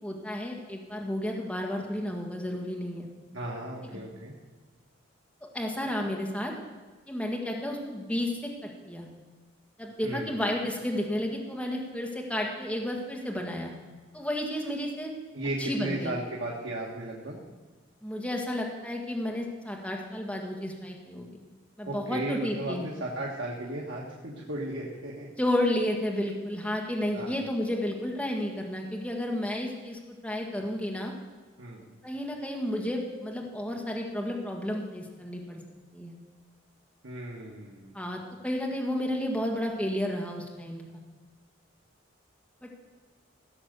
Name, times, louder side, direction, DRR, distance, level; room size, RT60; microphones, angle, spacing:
voice 1, 0.0-3.1 3.9-4.0 5.4-6.5 7.1-9.1 9.8-13.7 14.1-15.1 15.6-16.1 18.0-21.4 21.8-22.8 25.4-31.1 32.0-35.6 35.9-36.1 37.9-40.8 42.6-42.7, left 1 dB, 5° left, 0 dB, 1.6 m, -32 dB
voice 2, 3.3-4.3 10.0-10.3 15.3-17.4 21.8-25.3 27.1-27.3 31.6-31.8 37.0-38.0, right 1 dB, 70° right, -4 dB, 1.6 m, -35 dB
16.0 x 6.5 x 6.7 m, 1.4 s
head